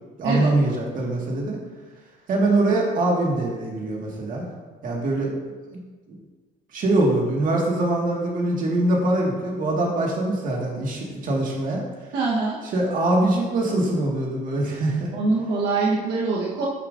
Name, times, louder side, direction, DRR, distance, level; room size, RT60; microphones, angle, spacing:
voice 1, 0.2-1.6 2.3-4.5 4.8-5.3 5.7-5.8 6.1-6.2 6.7-11.8 12.6-15.1, right 2 dB, 55° right, -2 dB, 1.9 m, -23 dB
voice 2, 12.1-12.6 15.1-16.7, right 3 dB, 85° right, -5 dB, 1.3 m, -23 dB
9.9 x 5.7 x 2.6 m, 1.3 s
cardioid pair, 110°, 17 cm